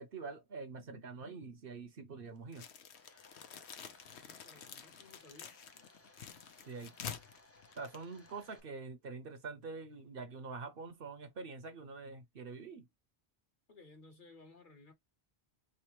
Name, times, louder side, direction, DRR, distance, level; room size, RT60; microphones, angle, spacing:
voice 1, 0.0-2.7 6.7-6.9 7.8-12.9, right 4 dB, 60° right, 0.9 m, -45 dB
sound 1, 2.5-8.6, left 8 dB, 75° left, 1.0 m, -49 dB
Domestic sounds home sounds, 2.9-8.6, left 2 dB, 20° left, 0.5 m, -63 dB
voice 2, 3.9-5.6 13.7-14.9, left 3 dB, 50° left, 1.4 m, -59 dB
4.0 x 3.3 x 3.0 m
omnidirectional pair, 1.1 m